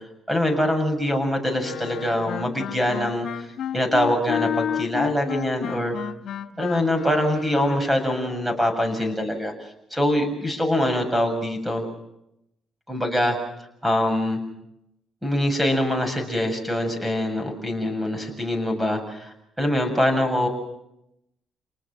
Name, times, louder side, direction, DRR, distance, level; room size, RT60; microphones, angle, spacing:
voice 1, 0.3-3.3 3.7-6.0 6.6-9.5 9.9-11.8 12.9-13.4 13.8-14.4 15.2-20.5, left 1 dB, 10° right, 6 dB, 7.2 m, -24 dB
Wind instrument woodwind instrument, 1.6-8.0, left 9 dB, 65° left, 1.3 m, -31 dB
29.5 x 20.0 x 6.4 m, 0.83 s
cardioid pair, 90°, 0 cm